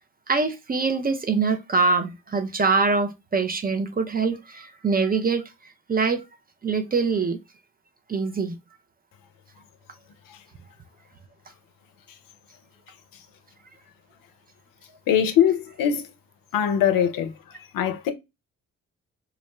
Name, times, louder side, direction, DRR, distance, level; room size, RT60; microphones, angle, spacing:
voice 1, 0.3-5.4 5.9-6.2 6.6-7.4 8.1-8.6, right 4 dB, 25° right, 0.5 m, -24 dB
voice 2, 15.1-16.1 16.5-17.3 17.7-18.1, left 9 dB, 60° left, 0.6 m, -21 dB
2.4 x 2.1 x 2.9 m
hypercardioid pair, 45°, 38 cm